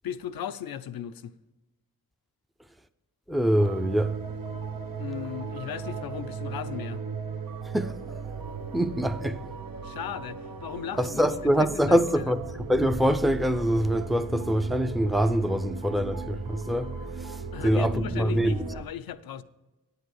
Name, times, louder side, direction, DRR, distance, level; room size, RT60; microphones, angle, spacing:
voice 1, 0.0-1.3 5.0-7.0 9.8-12.3 17.5-19.4, left 9 dB, 85° left, 0.6 m, -37 dB
voice 2, 3.3-4.1 7.7-8.2 8.7-9.4 11.0-16.9 17.6-18.6, equal, ahead, 0.5 m, -24 dB
sound 1, 3.6-18.8, right 4 dB, 70° right, 1.0 m, -37 dB
8.9 x 8.0 x 6.4 m
cardioid pair, 45°, 35 cm